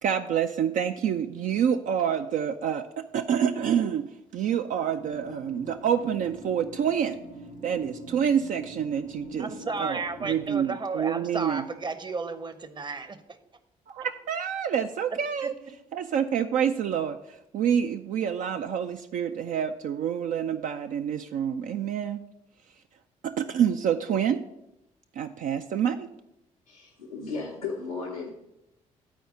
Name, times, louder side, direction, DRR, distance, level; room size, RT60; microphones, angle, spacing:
voice 1, 0.0-7.2 7.6-9.5 9.8-11.6 13.9-15.5 15.9-22.2 23.2-24.4 25.2-26.1, right 8 dB, 50° right, 7 dB, 0.4 m, -27 dB
sound 1, 4.9-10.5, equal, 85° right, 2.9 m, -44 dB
voice 2, 9.4-13.4 15.4-15.5, right 4 dB, 25° right, 12 dB, 0.8 m, -33 dB
voice 3, 26.7-28.3, left 4 dB, 90° left, -5 dB, 0.8 m, -35 dB
8.1 x 4.6 x 6.4 m, 0.86 s
figure-of-eight pair, 45°, 17 cm